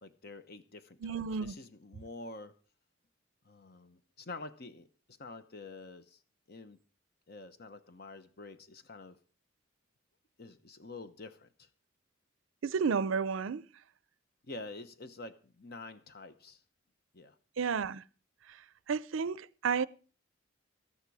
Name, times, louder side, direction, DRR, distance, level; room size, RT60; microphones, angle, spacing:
voice 1, 0.0-2.5 3.4-6.2 6.5-6.8 7.3-9.2 10.4-11.7 14.4-16.6 17.1-17.4, left 2 dB, 50° left, 0.9 m, -48 dB
voice 2, 1.0-1.5 12.6-13.7 17.6-18.0 18.5-18.6 18.9-19.9, right 5 dB, 80° right, 0.5 m, -31 dB
13.5 x 11.0 x 4.8 m
head